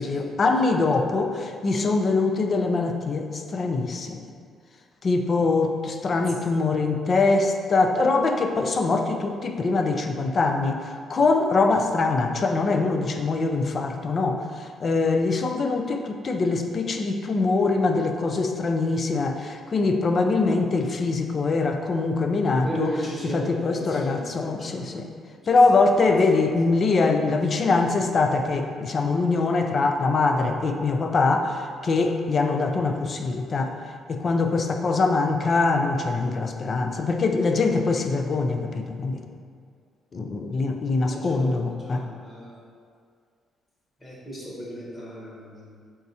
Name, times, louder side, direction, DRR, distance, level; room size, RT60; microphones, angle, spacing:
voice 1, 0.0-4.3 5.0-22.9 23.3-25.1 25.5-33.8 34.1-39.2 40.1-42.1, left 3 dB, 45° left, 5 dB, 0.4 m, -23 dB
voice 2, 6.1-6.8 22.3-24.8 25.8-26.5 26.8-27.0 41.1-41.4 41.8-42.6 44.0-45.8, equal, 30° left, -6 dB, 1.3 m, -37 dB
4.1 x 3.6 x 2.8 m, 2.1 s
cardioid pair, 90°, 0 cm